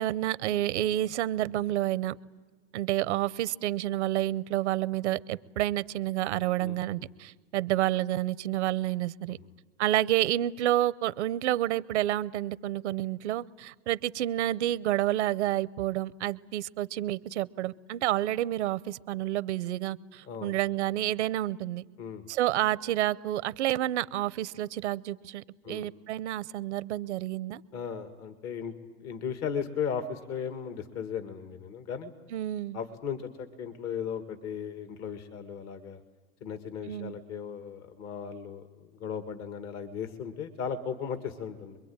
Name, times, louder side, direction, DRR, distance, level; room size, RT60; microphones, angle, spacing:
voice 1, 0.0-2.2 2.7-9.4 9.8-21.8 22.3-27.6 32.3-32.8 36.9-37.2, right 14 dB, 85° right, 0.8 m, -29 dB
voice 2, 6.6-7.1 9.4-9.5 20.2-20.6 22.0-22.2 25.6-25.9 27.7-32.1 32.7-36.0 36.4-41.8, left 7 dB, 50° left, 2.1 m, -36 dB
26.0 x 22.5 x 8.8 m
hypercardioid pair, 95°, 33 cm